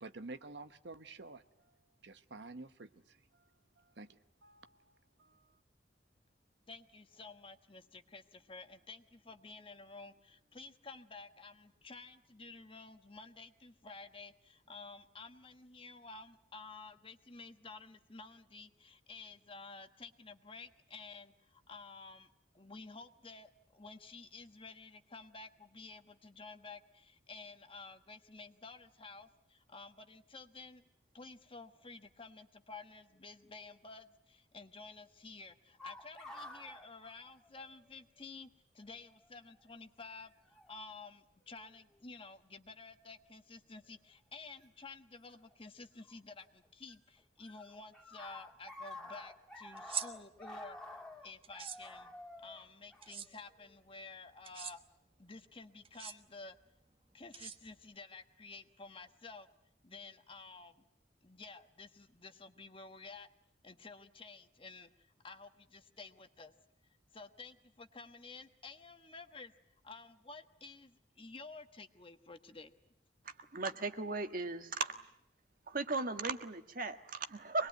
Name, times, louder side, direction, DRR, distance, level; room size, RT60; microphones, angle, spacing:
voice 1, 0.0-1.8 2.0-5.6, right 3 dB, 75° right, 10 dB, 1.0 m, -51 dB
voice 2, 6.7-22.3 22.5-30.8 31.1-38.5 38.7-50.8 51.2-52.1 52.4-54.8 55.2-56.6 57.1-59.5 59.8-60.8 61.2-63.3 63.6-64.9 65.2-66.5 67.1-69.5 69.8-72.7, left 3 dB, 30° left, 8 dB, 1.3 m, -52 dB
sound 1, 35.8-37.9 38.2-38.3 39.2-39.5 40.5-40.7 41.5-42.0 44.6-44.7 46.0-46.9 47.2-53.8, left 1 dB, 5° left, 2.2 m, -50 dB
sound 2, 49.8-50.1 51.4-51.8 53.0-53.3 54.4-54.7 55.8-56.1 57.3-57.9, right 7 dB, 30° right, 1.2 m, -41 dB
voice 3, 73.2-75.0 75.7-77.7, right 3 dB, 50° right, 8 dB, 1.6 m, -37 dB
25.0 x 20.5 x 9.3 m, 0.80 s
head